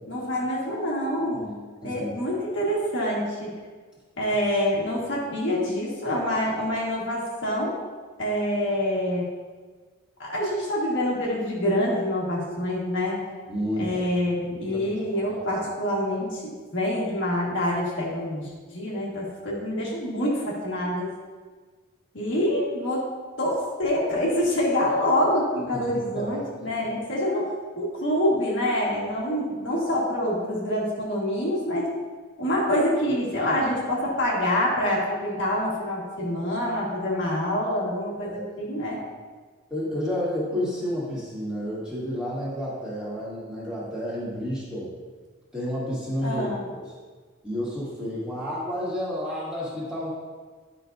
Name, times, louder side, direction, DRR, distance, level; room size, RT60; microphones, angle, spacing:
voice 1, 0.1-3.5 4.2-7.7 8.2-9.2 10.2-13.3 13.8-21.1 22.1-23.0 23.4-31.9 32.4-39.0 46.2-46.6, left 1 dB, 60° left, -5 dB, 1.7 m, -26 dB
voice 2, 13.5-14.0 14.6-15.4 25.7-26.9 38.2-38.4 39.7-44.9 45.5-46.4 46.7-46.9 47.4-50.1, equal, 5° right, -9 dB, 2.1 m, -31 dB
10.5 x 5.6 x 2.6 m, 1.5 s
head